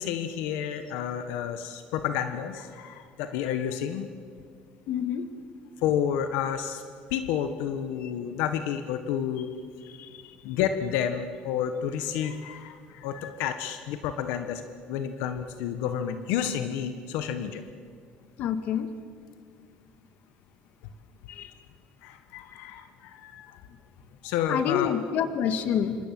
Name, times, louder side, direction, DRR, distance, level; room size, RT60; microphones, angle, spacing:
voice 1, 0.0-4.1 5.8-6.8 7.1-9.5 10.4-14.6 14.9-17.6 22.0-23.6 24.2-25.0, left 9 dB, 85° left, 8 dB, 1.5 m, -30 dB
voice 2, 4.9-5.3 8.0-8.1 9.9-10.4 18.4-18.9 21.3-21.5 24.5-26.0, left 8 dB, 60° left, 9 dB, 1.9 m, -28 dB
27.5 x 25.5 x 7.8 m, 2.1 s
cardioid pair, 140°, 3 cm